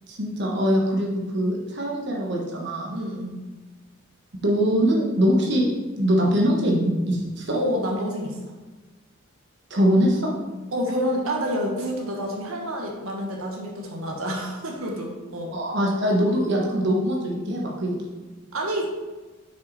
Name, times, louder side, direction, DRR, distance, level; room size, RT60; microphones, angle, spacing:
voice 1, 0.1-3.0 4.4-5.7 6.0-7.5 9.7-10.3 15.5-18.0, equal, 55° right, -2 dB, 1.2 m, -22 dB
voice 2, 2.9-3.3 7.5-8.4 10.7-15.5 18.5-18.9, equal, 85° right, 0 dB, 1.3 m, -28 dB
6.4 x 5.6 x 4.1 m, 1.2 s
head